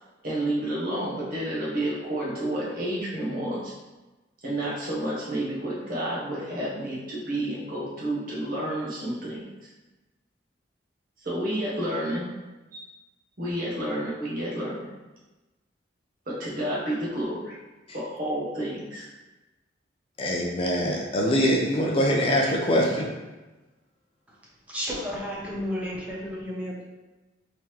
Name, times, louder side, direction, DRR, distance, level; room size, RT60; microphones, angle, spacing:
voice 1, 0.2-3.7 4.4-9.5 11.2-12.3 12.7-12.8 13.4-14.8 16.3-17.6 17.9-19.1, right 1 dB, 45° right, -7 dB, 0.9 m, -30 dB
voice 2, 20.2-23.1, equal, 30° left, -1 dB, 0.4 m, -23 dB
voice 3, 24.7-26.8, equal, 5° right, -6 dB, 0.7 m, -32 dB
3.5 x 3.0 x 3.0 m, 1.1 s
head